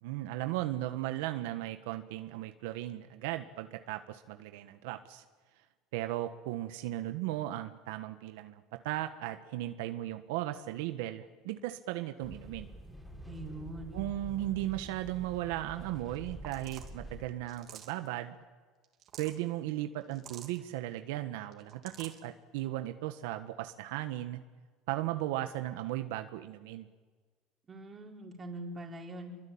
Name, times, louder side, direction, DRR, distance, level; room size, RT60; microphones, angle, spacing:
voice 1, 0.0-5.2 5.9-12.7 13.9-18.3 19.2-24.4 24.9-26.9, right 14 dB, 85° right, 8 dB, 1.4 m, -36 dB
sound 1, 12.2-17.3, equal, 5° left, 6.5 m, -47 dB
voice 2, 13.3-14.0 27.7-29.3, right 1 dB, 20° right, 1 dB, 4.7 m, -43 dB
sound 2, 16.4-16.9 17.5-18.1 18.8-19.4 20.1-20.6 21.5-22.2, right 10 dB, 45° right, 3.1 m, -49 dB
26.5 x 23.5 x 8.8 m, 1.4 s
cardioid pair, 135°, 0 cm